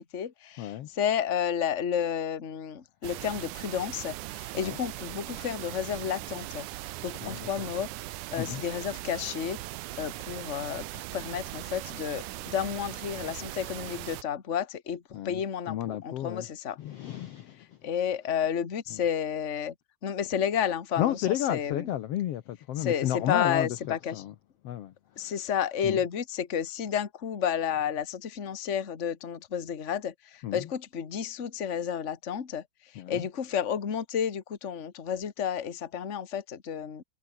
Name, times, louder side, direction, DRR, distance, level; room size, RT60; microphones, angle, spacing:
voice 1, 0.0-6.7 7.0-7.9 8.3-9.6 10.0-16.8 17.8-19.7 20.0-21.9 22.8-24.2 25.2-32.6 33.1-37.0, left 8 dB, 30° left, 1.4 m, -31 dB
voice 2, 0.6-0.9 4.6-4.8 7.2-7.7 8.4-8.6 15.1-15.4 15.7-16.5 16.8-17.9 18.9-19.0 21.0-24.3 24.6-25.3 25.8-26.0 30.4-30.7 32.9-33.3, left 12 dB, 65° left, 1.6 m, -33 dB
sound 1, 3.0-14.2, right 17 dB, 80° right, 2.2 m, -39 dB
omnidirectional pair, 3.7 m